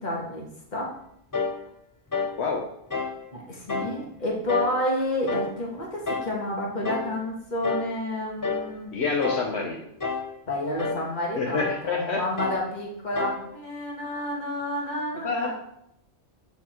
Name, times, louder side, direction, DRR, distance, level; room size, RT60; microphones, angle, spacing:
voice 1, 0.0-0.9 3.3-8.9 10.5-15.5, left 1 dB, 40° left, -3 dB, 1.9 m, -30 dB
sound 1, 1.3-1.6 2.1-2.4 2.9-3.2 3.7-4.0 4.5-4.8 5.3-5.6 6.1-6.4 6.8-7.1 7.6-7.9 8.4-8.7 9.2-9.5 10.0-10.3 10.8-11.1 11.6-11.9 12.4-12.7 13.2-13.5, left 4 dB, 25° left, 0.5 m, -29 dB
voice 2, 8.9-9.9 11.4-12.2 15.2-15.5, left 4 dB, 70° left, 0 dB, 1.2 m, -27 dB
8.5 x 4.3 x 4.5 m, 0.77 s
omnidirectional pair, 1.2 m